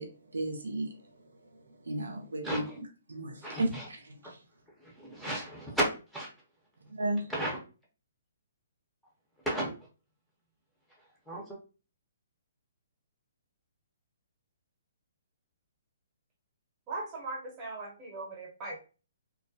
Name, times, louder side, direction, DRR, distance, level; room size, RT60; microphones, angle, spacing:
voice 1, 0.0-4.4 6.9-7.3, right 1 dB, 75° right, 0.5 m, -35 dB
voice 2, 3.4-3.8 4.8-5.8 6.1-6.3 7.3-7.5 9.5-9.7 11.3-11.4, right 1 dB, ahead, 0.7 m, -33 dB
voice 3, 16.9-18.8, right 2 dB, 25° right, 0.9 m, -39 dB
2.3 x 2.1 x 2.6 m
figure-of-eight pair, 130°, 0 cm